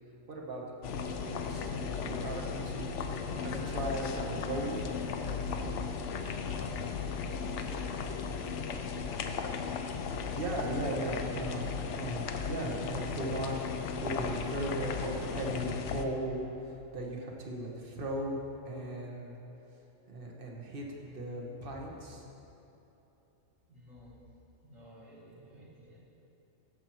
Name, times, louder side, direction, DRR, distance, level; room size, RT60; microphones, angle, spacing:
voice 1, 0.3-4.9 10.3-19.4 20.1-22.2, right 1 dB, 45° right, -1 dB, 1.2 m, -38 dB
sound 1, 0.8-16.0, left 5 dB, 70° left, 0.8 m, -36 dB
voice 2, 7.5-7.9 23.7-24.2 24.6-26.0, equal, 75° right, -7 dB, 1.8 m, -53 dB
13.0 x 7.2 x 3.0 m, 2.9 s
omnidirectional pair, 1.4 m